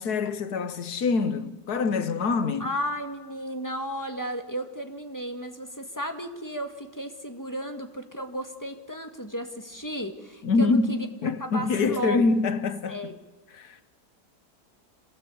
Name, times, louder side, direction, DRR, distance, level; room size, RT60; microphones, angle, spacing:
voice 1, 0.0-2.7 10.4-13.0 13.5-13.8, left 4 dB, 80° left, 1.7 m, -25 dB
voice 2, 2.6-11.1 11.4-12.2 12.9-13.1, equal, 10° left, 1.9 m, -34 dB
26.5 x 18.5 x 8.5 m
omnidirectional pair, 1.6 m